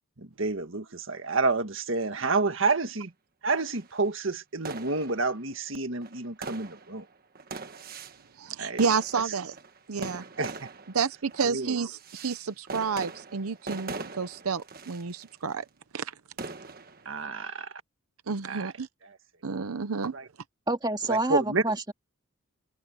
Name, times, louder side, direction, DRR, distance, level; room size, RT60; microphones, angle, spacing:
voice 1, 0.2-3.1 3.4-7.1 8.6-8.8 10.4-10.7 11.4-11.8 17.1-17.7 18.5-18.7 20.1-20.3 21.1-21.6, right 3 dB, 65° right, 1.7 m, -29 dB
sound 1, 2.8-2.9 3.5-3.9 4.6-5.6 6.0-8.3 8.8-15.5 16.4-17.3, right 3 dB, 45° right, 1.5 m, -42 dB
voice 2, 8.4-9.5 9.9-10.2 10.9-15.6 15.9-16.1 18.3-18.9 19.4-20.1, right 5 dB, 85° right, 0.7 m, -30 dB
voice 3, 20.7-21.9, right 2 dB, 20° right, 2.1 m, -28 dB
head